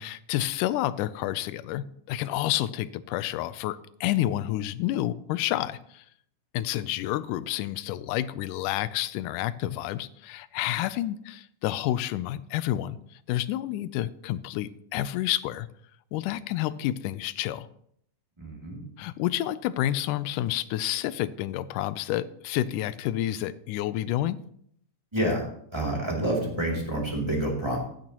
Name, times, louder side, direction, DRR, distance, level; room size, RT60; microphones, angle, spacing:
voice 1, 0.0-6.1 6.5-13.0 13.3-15.7 16.1-17.7 19.0-24.4, left 14 dB, 85° left, 16 dB, 2.1 m, -29 dB
voice 2, 18.4-18.9 25.1-25.5 25.7-27.8, right 1 dB, 10° right, -2 dB, 1.8 m, -28 dB
15.0 x 9.0 x 2.9 m, 0.66 s
omnidirectional pair, 3.7 m